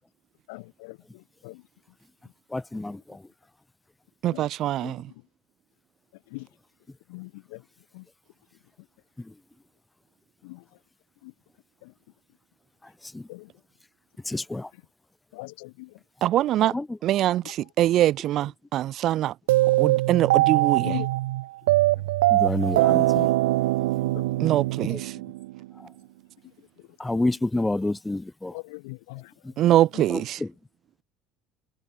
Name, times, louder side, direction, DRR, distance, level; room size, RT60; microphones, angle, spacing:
voice 1, 0.5-1.7 2.2-2.3 3.1-3.2 4.3-4.5 4.8-5.3 6.1-6.5 7.1-8.1 8.5-8.9 10.4-10.8 11.2-11.3 11.8-12.0 13.3-13.5 14.7-14.9 15.3-16.0 16.4-16.8 17.4-17.7 18.2-18.3 19.2-19.3 20.2-20.4 20.8-21.1 21.9-22.1 22.4-23.4 24.1-25.0 25.2-25.4 26.4-27.9 28.5-30.5, left 27 dB, 75° left, 3.1 m, -43 dB
voice 2, 2.5-3.2 13.0-13.2 14.3-14.7 16.7-16.8 22.3-23.3 24.9-25.0 27.0-28.5, left 2 dB, 10° left, 0.3 m, -28 dB
voice 3, 4.2-5.0 16.2-16.7 17.0-19.3 19.8-20.9 24.4-25.2 29.6-30.4, right 13 dB, 55° right, 0.8 m, -23 dB
sound 1, 19.5-25.7, right 18 dB, 80° right, 0.3 m, -22 dB
hypercardioid pair, 70°, 0 cm